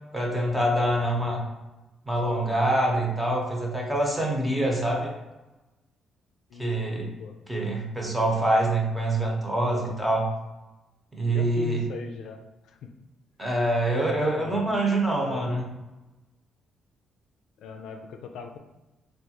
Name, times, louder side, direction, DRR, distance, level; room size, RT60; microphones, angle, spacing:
voice 1, 0.1-1.4 2.1-5.1 6.6-7.1 7.5-10.3 11.1-11.8 13.4-15.7, right 1 dB, 10° right, -1 dB, 0.9 m, -25 dB
voice 2, 6.5-7.3 9.7-10.0 11.3-12.4 12.7-12.9 13.8-14.6 15.2-15.5 17.6-18.6, left 6 dB, 80° left, 4 dB, 0.4 m, -40 dB
3.4 x 2.4 x 2.9 m, 1.1 s
cardioid pair, 90°, 0 cm